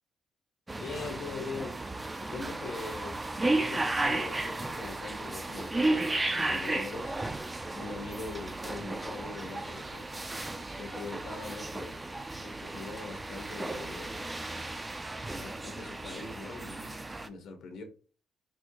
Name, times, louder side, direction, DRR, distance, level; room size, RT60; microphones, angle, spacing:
sound 1, 0.7-17.3, right 2 dB, 20° right, 0.4 m, -34 dB
voice 1, 0.8-1.8 2.2-7.2 7.7-10.1 10.8-12.0 12.4-14.3 15.4-17.8, left 4 dB, 75° left, 1.0 m, -42 dB
4.3 x 2.7 x 2.3 m
cardioid pair, 90°, 0 cm